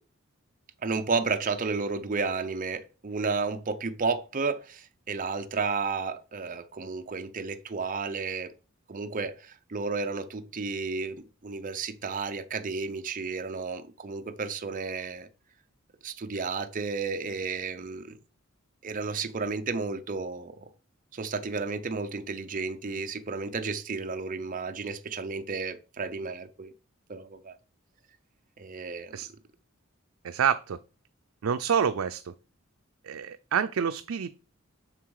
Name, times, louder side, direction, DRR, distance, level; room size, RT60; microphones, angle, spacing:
voice 1, 0.8-8.5 8.9-15.3 16.0-18.2 18.8-20.7 21.1-26.7 27.1-27.5 28.6-29.2, right 4 dB, 40° right, 0.6 m, -32 dB
voice 2, 30.2-30.8 31.4-32.3 33.0-34.3, right 7 dB, 85° right, 0.4 m, -27 dB
7.5 x 6.1 x 4.8 m
head